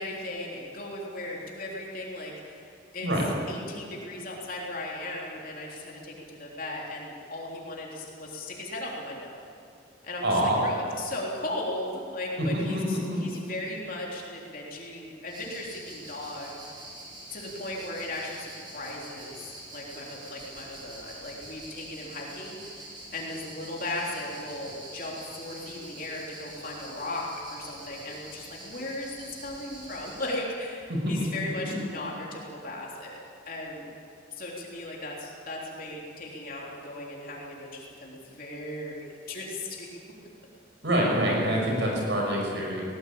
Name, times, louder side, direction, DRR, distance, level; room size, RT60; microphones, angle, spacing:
voice 1, 0.0-3.1 3.5-9.3 10.0-16.6 17.3-33.9 34.3-40.0, left 1 dB, 45° left, -3 dB, 3.6 m, -37 dB
voice 2, 10.2-10.6 12.4-12.5 12.7-12.8 13.1-13.2 30.9-31.0 40.8-42.8, right 1 dB, 65° right, -1 dB, 6.2 m, -25 dB
sound 1, 15.3-30.4, right 1 dB, 25° right, 4.8 m, -45 dB
19.0 x 18.0 x 8.7 m, 2.4 s
head